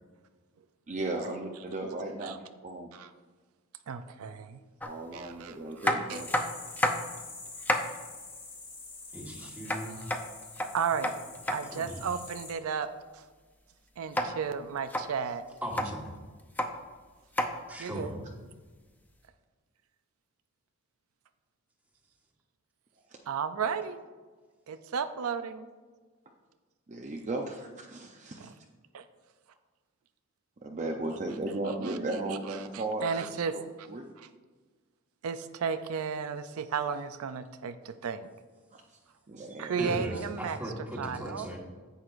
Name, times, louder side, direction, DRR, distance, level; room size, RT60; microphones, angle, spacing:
voice 1, 0.9-2.9 4.8-6.3 26.9-28.5 30.6-33.1 33.5-33.6 33.9-34.0 38.7-38.8 39.3-40.0, right 2 dB, 35° right, 0 dB, 0.6 m, -35 dB
voice 2, 3.9-4.6 5.1-6.5 9.4-9.5 9.9-10.1 10.7-11.1 11.5-13.2 14.0-15.4 17.8-18.1 23.3-24.0 24.7-25.7 28.4-28.5 28.9-29.1 31.8-32.0 32.3-33.9 34.2-34.3 35.2-38.3 39.6-40.6 41.0-41.5, right 6 dB, 80° right, 10 dB, 0.4 m, -34 dB
sound 1, 4.8-4.9 5.8-7.2 7.5-8.0 9.7-11.6 14.1-14.3 14.8-15.1 15.6-15.9 16.4-16.7 17.4-17.5 18.7-18.8, left 1 dB, 10° left, 0.6 m, -29 dB
sound 2, 6.1-12.5, left 3 dB, 25° left, 1.9 m, -46 dB
voice 3, 9.1-10.0 11.7-12.0 15.6-16.1 17.7-18.3 39.8-41.6, equal, 5° right, -2 dB, 1.5 m, -37 dB
10.0 x 8.1 x 2.5 m, 1.4 s
head